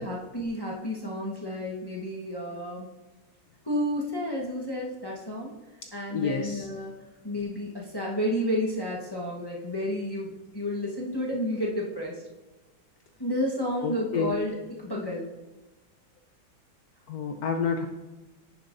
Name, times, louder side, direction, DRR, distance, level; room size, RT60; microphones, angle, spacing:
voice 1, 0.0-2.9 3.7-5.5 5.9-6.9 7.2-12.1 13.2-15.3, left 1 dB, 30° left, -4 dB, 0.4 m, -31 dB
voice 2, 6.1-6.7 13.8-14.3 17.1-17.9, left 5 dB, 80° left, 4 dB, 0.8 m, -29 dB
9.8 x 7.0 x 2.5 m, 1.1 s
omnidirectional pair, 2.2 m